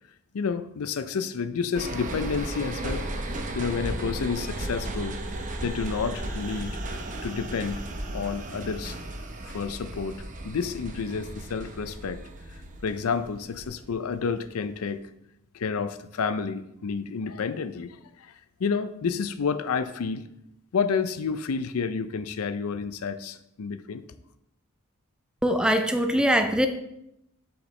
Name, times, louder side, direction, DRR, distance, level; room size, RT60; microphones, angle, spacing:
voice 1, 0.3-3.1 3.5-5.2 5.6-6.8 7.2-7.8 8.1-9.0 9.4-12.2 12.8-15.0 15.5-18.3 18.6-20.2 20.7-24.0, left 5 dB, 75° left, 12 dB, 0.5 m, -30 dB
sound 1, 1.7-14.3 14.7-14.8, right 1 dB, 35° right, 0.8 m, -35 dB
voice 2, 25.4-26.7, equal, 5° right, 7 dB, 0.4 m, -22 dB
7.9 x 5.8 x 3.2 m, 0.81 s
head